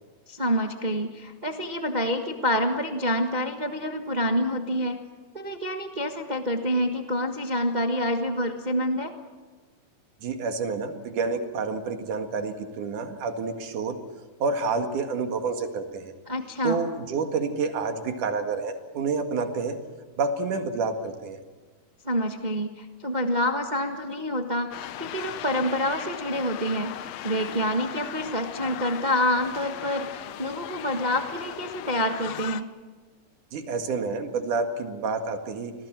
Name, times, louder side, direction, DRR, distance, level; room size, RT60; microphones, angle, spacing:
voice 1, 0.3-5.0 5.3-9.1 16.3-16.8 22.0-32.7, equal, 60° right, 4 dB, 0.4 m, -27 dB
voice 2, 10.2-14.0 14.4-16.1 16.6-19.8 20.2-21.4 33.5-35.7, right 4 dB, 80° right, 6 dB, 3.4 m, -29 dB
sound 1, 24.7-32.6, left 12 dB, 70° left, 1.7 m, -38 dB
26.5 x 19.5 x 7.5 m, 1.4 s
omnidirectional pair, 3.5 m